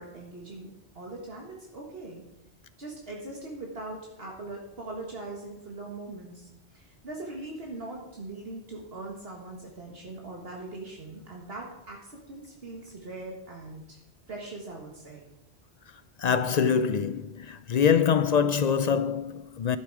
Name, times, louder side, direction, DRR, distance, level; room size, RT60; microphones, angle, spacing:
voice 1, 0.0-2.2 2.8-14.0 14.3-15.2, right 2 dB, 60° right, 1.8 m, -41 dB
voice 2, 16.2-19.8, left 7 dB, 55° left, 0.4 m, -24 dB
12.0 x 8.6 x 4.8 m
omnidirectional pair, 1.1 m